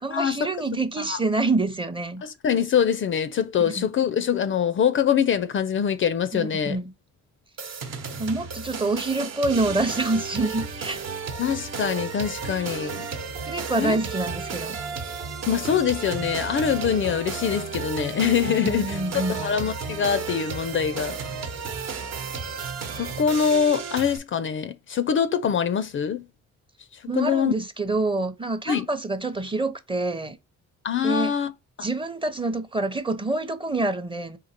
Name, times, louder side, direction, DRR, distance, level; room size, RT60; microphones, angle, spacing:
voice 1, 0.0-2.2 3.8-3.9 6.3-6.9 8.2-11.0 13.4-14.8 18.6-19.5 27.1-30.4 31.0-31.3 31.8-34.4, right 2 dB, 15° right, 0.6 m, -27 dB
voice 2, 2.2-6.8 11.4-13.1 13.8-14.0 15.5-21.2 23.0-26.3 26.9-27.5 28.7-28.9 30.8-31.5 31.8-31.9, left 7 dB, 45° left, 0.4 m, -24 dB
sound 1, 7.6-24.2, right 5 dB, 60° right, 0.9 m, -33 dB
3.9 x 2.8 x 4.2 m
cardioid pair, 90°, 30 cm